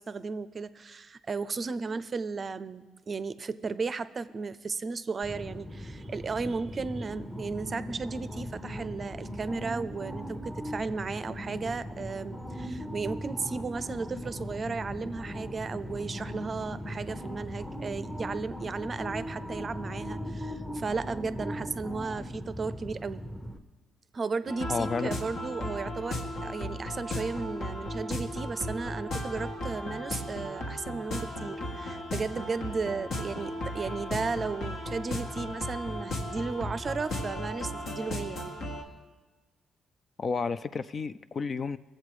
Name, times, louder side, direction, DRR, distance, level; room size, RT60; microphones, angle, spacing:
voice 1, 0.0-23.2 24.1-38.6, right 4 dB, 40° right, 15 dB, 0.5 m, -35 dB
sound 1, 5.2-23.6, equal, 10° left, 1.0 m, -39 dB
sound 2, 24.5-38.8, left 1 dB, 65° left, 1.6 m, -36 dB
voice 2, 24.7-25.1 40.2-41.8, left 5 dB, 45° left, 14 dB, 0.4 m, -31 dB
20.0 x 7.6 x 4.9 m, 1.2 s
cardioid pair, 90°, 0 cm